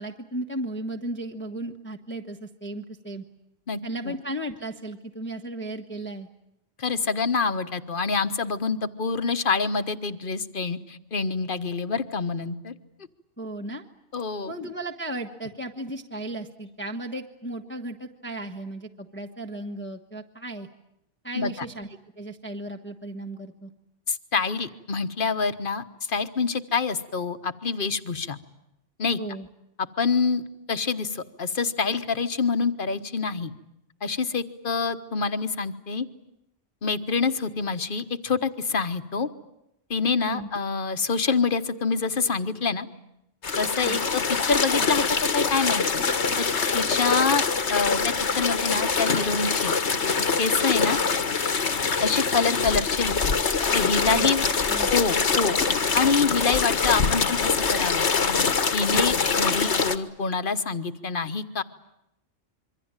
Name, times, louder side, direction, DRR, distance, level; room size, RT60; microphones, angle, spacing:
voice 1, 0.0-3.2 3.8-6.3 13.4-13.8 14.5-20.7 21.2-23.7 29.2-29.5 40.2-40.5 43.8-44.1 54.0-54.3 54.7-54.9, right 1 dB, 10° left, 2 dB, 1.3 m, -35 dB
voice 2, 3.7-4.1 6.8-12.7 14.1-14.5 21.4-21.7 24.1-28.4 29.0-29.2 30.0-30.4 30.7-33.5 34.0-36.1 36.8-39.3 39.9-42.9 43.6-45.0 45.3-46.0 46.4-46.5 46.7-47.4 47.7-49.7 50.4-51.0 52.0-53.3 53.7-54.4 54.9-55.6 55.9-58.1 58.7-61.6, left 4 dB, 45° left, 10 dB, 1.4 m, -26 dB
sound 1, 43.4-60.0, left 5 dB, 70° left, 1.7 m, -24 dB
26.5 x 24.0 x 8.9 m, 0.83 s
omnidirectional pair, 1.2 m